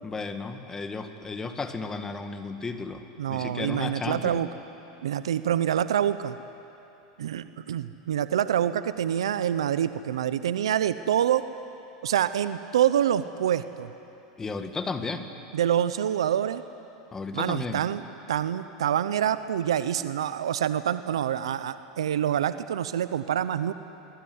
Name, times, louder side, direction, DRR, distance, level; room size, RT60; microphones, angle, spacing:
voice 1, 0.0-3.0 3.3-4.4 14.4-15.3 17.1-17.8, left 4 dB, 20° left, 7 dB, 1.9 m, -33 dB
voice 2, 3.2-4.5 5.0-6.4 7.2-11.4 12.0-13.9 15.5-16.6 17.3-18.0 18.3-23.7, right 10 dB, 90° right, 13 dB, 0.7 m, -26 dB
23.0 x 21.0 x 9.6 m, 3.0 s
hypercardioid pair, 110°, 3 cm